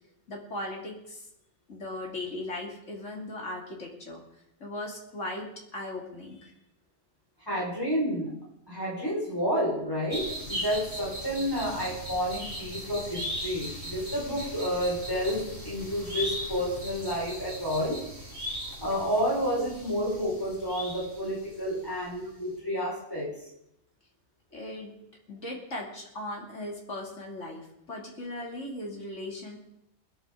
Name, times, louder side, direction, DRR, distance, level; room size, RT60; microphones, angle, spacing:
voice 1, 0.3-1.3 1.7-4.2 4.6-6.5 24.5-24.9 25.3-29.6, left 1 dB, 90° left, -2 dB, 3.4 m, -38 dB
voice 2, 7.5-8.3 8.7-18.0 18.8-23.3, equal, 20° left, -5 dB, 5.6 m, -30 dB
sound 1, 10.1-21.8 22.0-22.1, equal, 40° right, 5.1 m, -38 dB
22.0 x 13.0 x 3.9 m, 0.79 s
omnidirectional pair, 1.2 m